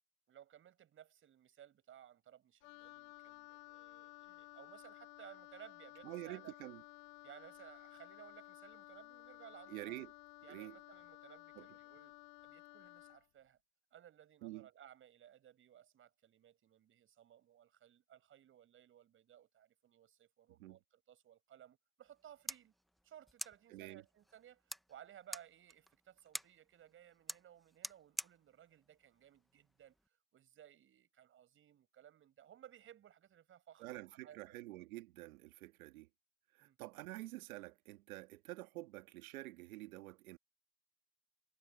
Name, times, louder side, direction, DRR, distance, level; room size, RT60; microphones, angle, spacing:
voice 1, 0.3-6.6 7.2-10.0 10.4-12.1 12.4-13.6 13.9-22.7 23.0-29.9 30.3-34.6 36.6-36.8, right 10 dB, 30° right, 6.8 m, -60 dB
Wind instrument woodwind instrument, 2.6-13.3, left 20 dB, 75° left, 0.8 m, -56 dB
voice 2, 6.0-6.8 9.7-10.1 10.5-10.8 11.6-11.7 14.4-14.7 20.6-20.8 23.7-24.0 33.8-36.1 36.5-40.4, right 18 dB, 85° right, 1.8 m, -48 dB
sound 1, 22.1-30.1, equal, ahead, 0.6 m, -50 dB
supercardioid pair, 140°, 41 cm